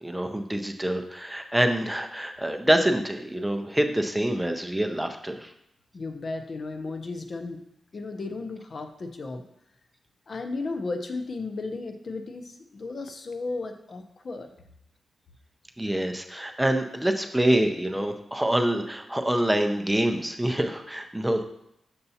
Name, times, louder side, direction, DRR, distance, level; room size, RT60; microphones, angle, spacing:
voice 1, 0.0-5.5 15.8-21.4, right 1 dB, 5° right, 5 dB, 0.5 m, -26 dB
voice 2, 5.9-7.6 7.9-9.4 10.3-14.5, left 3 dB, 40° left, 6 dB, 0.6 m, -34 dB
6.9 x 6.6 x 2.8 m, 0.78 s
wide cardioid pair, 165°, 0 cm